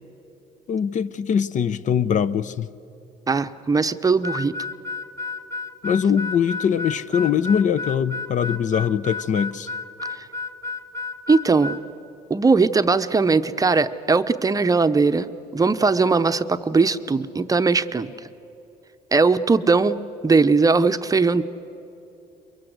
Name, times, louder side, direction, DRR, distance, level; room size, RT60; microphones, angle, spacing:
voice 1, 0.7-2.7 5.8-9.7, left 7 dB, 45° left, 16 dB, 0.7 m, -22 dB
voice 2, 3.3-4.6 10.1-10.2 11.3-11.8 12.3-18.1 19.1-21.4, right 4 dB, 20° right, 10 dB, 0.7 m, -19 dB
Harmonica, 4.2-11.8, left 4 dB, 15° left, 1.3 m, -32 dB
23.0 x 23.0 x 8.0 m, 2.9 s
cardioid pair, 110°, 17 cm